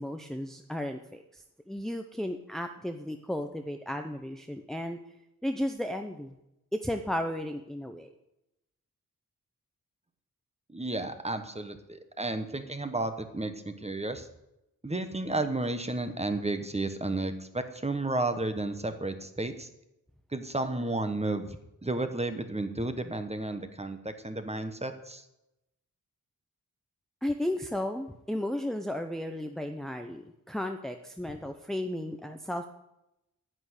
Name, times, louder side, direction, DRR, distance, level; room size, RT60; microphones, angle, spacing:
voice 1, 0.0-5.0 5.4-6.3 6.7-8.1 27.2-32.7, left 1 dB, ahead, 5 dB, 0.8 m, -34 dB
voice 2, 10.7-14.3 14.8-19.7 20.3-25.2, right 2 dB, 20° right, 8 dB, 1.3 m, -32 dB
10.5 x 8.9 x 9.8 m, 0.88 s
wide cardioid pair, 120°, 35 cm